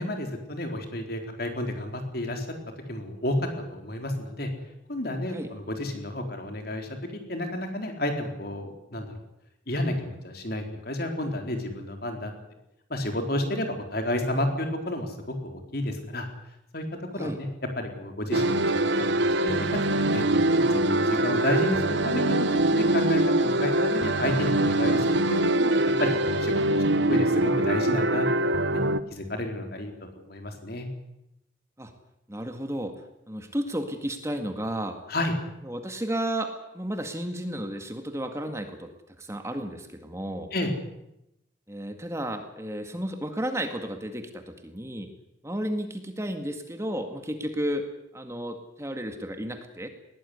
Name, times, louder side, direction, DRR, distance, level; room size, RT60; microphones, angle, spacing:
voice 1, 0.0-2.5 2.9-3.4 3.7-4.5 4.9-6.9 7.3-9.1 9.7-12.3 12.9-16.3 16.7-16.8 17.1-17.5 17.8-19.7 19.9-28.3 28.6-28.8 29.1-29.9 30.3-30.9 35.1-35.4 40.5-40.7, left 1 dB, 50° left, 4 dB, 4.1 m, -31 dB
sound 1, 18.3-29.0, right 1 dB, 65° right, 1.0 m, -23 dB
voice 2, 32.3-33.0 33.3-35.0 35.6-38.9 39.2-40.5 41.7-45.1 45.4-47.9 48.1-49.9, right 1 dB, 15° right, 6 dB, 1.9 m, -32 dB
20.5 x 18.0 x 9.6 m, 0.86 s
head